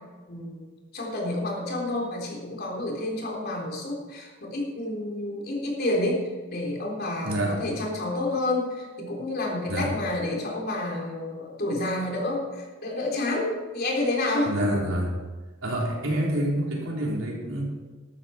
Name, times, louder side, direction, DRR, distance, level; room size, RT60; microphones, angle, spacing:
voice 1, 0.3-0.7 0.9-14.8, left 2 dB, 50° left, -1 dB, 3.6 m, -29 dB
voice 2, 7.2-7.6 9.7-9.9 14.4-15.1 15.6-17.6, right 1 dB, 75° right, -2 dB, 3.7 m, -27 dB
13.5 x 13.0 x 4.3 m, 1.3 s
head